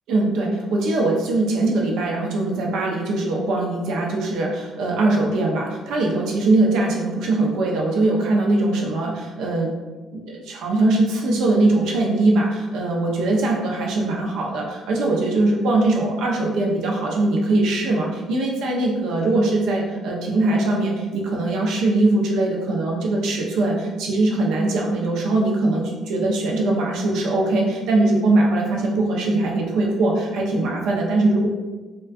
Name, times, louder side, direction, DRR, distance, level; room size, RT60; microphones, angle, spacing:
voice 1, 0.1-9.7 10.1-31.5, right 2 dB, 75° right, -1 dB, 0.6 m, -21 dB
3.6 x 2.3 x 2.4 m, 1.3 s
cardioid pair, 165°, 0 cm